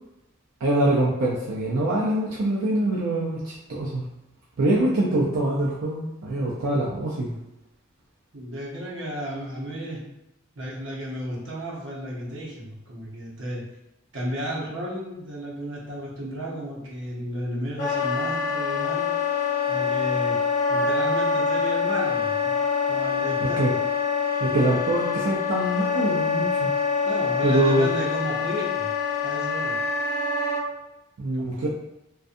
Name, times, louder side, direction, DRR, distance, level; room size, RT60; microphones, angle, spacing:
voice 1, 0.6-4.0 4.6-7.4 23.6-23.7 24.4-26.7 27.4-27.9 31.2-31.7, right 1 dB, 90° right, -5 dB, 0.5 m, -24 dB
voice 2, 8.3-10.0 10.5-13.6 14.1-19.1 19.7-20.4 20.7-22.5 22.9-23.8 27.0-28.9 29.2-29.8 31.4-31.7, right 1 dB, 65° right, -5 dB, 0.8 m, -33 dB
Wind instrument woodwind instrument, 17.8-30.6, left 5 dB, 35° left, 0.8 m, -25 dB
2.5 x 2.3 x 2.6 m, 0.93 s
head